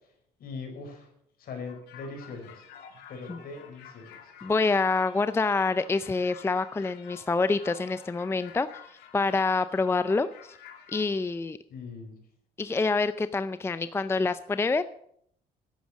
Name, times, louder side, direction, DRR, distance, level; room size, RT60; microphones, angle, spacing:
voice 1, 0.4-1.1 1.4-2.6 3.1-4.2 11.7-12.2, left 4 dB, 60° left, 3 dB, 4.8 m, -40 dB
sound 1, 1.6-11.1, left 8 dB, 80° left, 2.5 m, -50 dB
voice 2, 4.4-10.6 10.9-11.6 12.6-14.9, left 3 dB, 15° left, 13 dB, 0.5 m, -27 dB
11.5 x 9.3 x 7.3 m, 0.68 s
cardioid pair, 110°, 17 cm